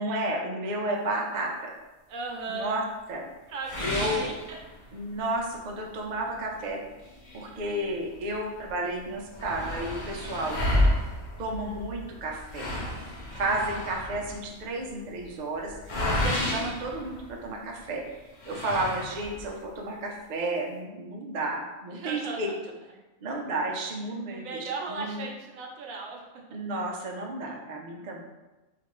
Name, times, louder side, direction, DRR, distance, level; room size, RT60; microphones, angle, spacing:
voice 1, 0.0-1.7 2.5-2.8 3.1-3.2 3.8-4.3 4.9-6.8 7.3-10.8 11.4-12.7 13.3-18.0 18.5-22.5 23.2-25.3 26.5-28.2, right 1 dB, 60° right, -1 dB, 0.4 m, -32 dB
voice 2, 2.1-2.7 3.5-4.3 13.4-13.6 21.9-22.4 24.3-26.3, right 4 dB, 80° right, 1 dB, 1.0 m, -36 dB
sound 1, 3.6-5.1 5.6-5.7 6.1-6.2 7.0-8.3 8.7-8.8 9.0-17.7 18.4-19.5, left 1 dB, 55° left, 0.5 m, -31 dB
3.7 x 2.5 x 3.0 m, 1.1 s
omnidirectional pair, 1.4 m